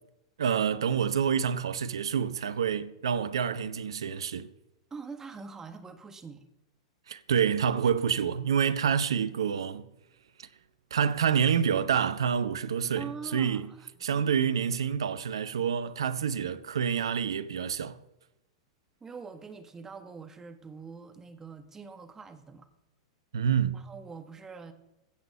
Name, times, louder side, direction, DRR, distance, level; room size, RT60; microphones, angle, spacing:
voice 1, 0.4-4.5 7.1-9.9 10.4-10.5 10.9-13.7 14.0-18.0 23.3-23.8, right 7 dB, 75° right, 0.8 m, -27 dB
voice 2, 4.9-6.5 13.0-13.9 19.0-22.7 23.7-24.7, right 5 dB, 20° right, 1.5 m, -44 dB
16.0 x 6.1 x 6.5 m
figure-of-eight pair, 95°, 3 cm